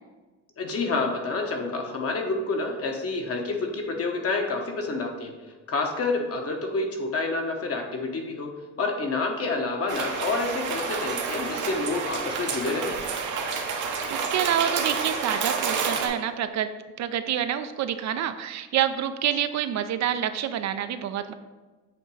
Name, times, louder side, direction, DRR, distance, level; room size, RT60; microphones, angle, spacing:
voice 1, 0.6-5.3 5.7-8.5 8.8-12.9, left 3 dB, 50° left, 2 dB, 1.2 m, -28 dB
sound 1, 9.9-16.1, right 5 dB, 80° right, 1.0 m, -29 dB
voice 2, 14.1-16.7 17.0-21.3, right 10 dB, 65° right, 10 dB, 0.5 m, -27 dB
7.8 x 3.0 x 4.8 m, 1.3 s
cardioid pair, 90°, 30 cm